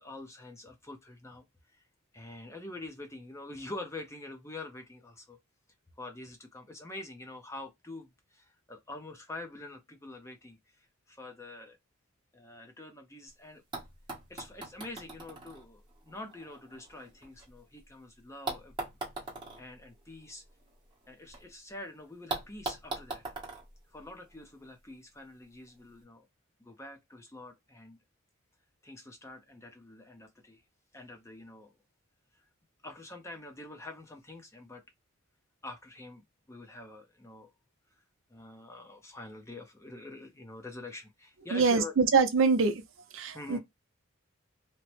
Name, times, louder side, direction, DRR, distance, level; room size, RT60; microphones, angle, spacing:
voice 1, 0.0-1.8 2.1-5.4 6.0-11.8 12.3-13.6 14.3-18.7 19.2-19.3 19.6-20.4 21.1-23.2 23.9-26.3 26.6-28.0 28.8-30.6 30.9-31.7 32.8-34.8 35.6-36.2 36.5-37.5 37.9-38.0 38.3-41.9 43.3-43.6, left 2 dB, 15° left, 0.5 m, -46 dB
sound 1, 13.3-13.4 13.7-17.8 18.5-21.4 21.7-21.8 22.3-24.7 25.7-25.8, right 3 dB, 20° right, 1.0 m, -42 dB
voice 2, 41.5-42.8 43.1-43.6, right 4 dB, 60° right, 0.5 m, -24 dB
2.9 x 2.0 x 3.0 m
head